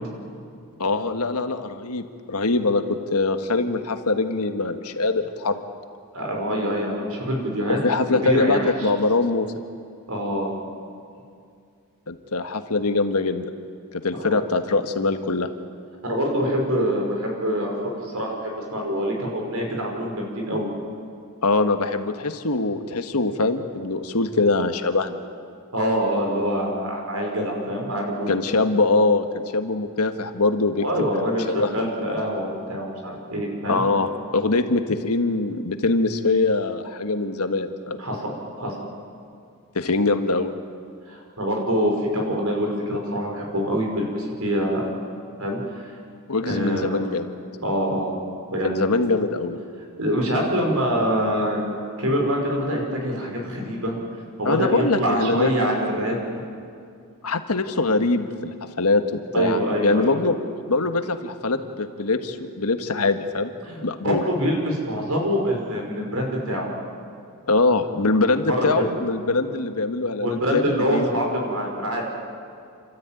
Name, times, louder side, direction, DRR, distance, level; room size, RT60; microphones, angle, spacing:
voice 1, 0.8-5.6 7.7-9.5 12.1-13.5 13.9-15.5 21.4-25.2 28.3-30.8 31.2-31.7 33.7-38.0 39.7-40.5 46.3-47.3 48.6-49.6 54.4-55.5 57.2-59.0 59.4-60.4 60.7-63.5 63.8-64.2 67.5-71.1, left 3 dB, 85° left, 7 dB, 1.5 m, -23 dB
voice 2, 6.1-7.8 8.1-8.9 10.1-10.5 14.3-14.4 16.0-20.7 25.7-28.4 30.7-33.8 38.0-38.3 38.6-38.7 41.1-44.9 45.4-45.9 46.4-47.0 47.6-48.1 48.5-48.7 50.0-51.6 52.0-54.0 54.4-56.2 59.3-60.2 63.6-63.8 64.0-66.7 68.3-68.9 70.2-72.0, equal, 75° right, 1 dB, 5.5 m, -25 dB
29.5 x 13.5 x 9.2 m, 2.3 s
head